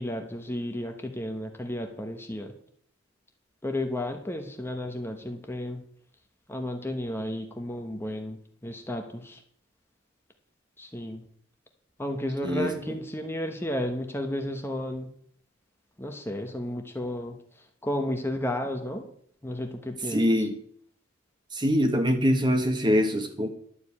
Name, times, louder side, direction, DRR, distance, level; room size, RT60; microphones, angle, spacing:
voice 1, 0.0-2.5 3.6-5.8 6.5-9.4 10.8-11.2 12.0-15.1 16.0-19.1 19.4-20.4, left 1 dB, 10° left, 4 dB, 1.0 m, -33 dB
voice 2, 20.1-20.5 21.5-23.5, equal, 20° right, 6 dB, 1.3 m, -23 dB
11.5 x 5.2 x 8.5 m, 0.62 s
head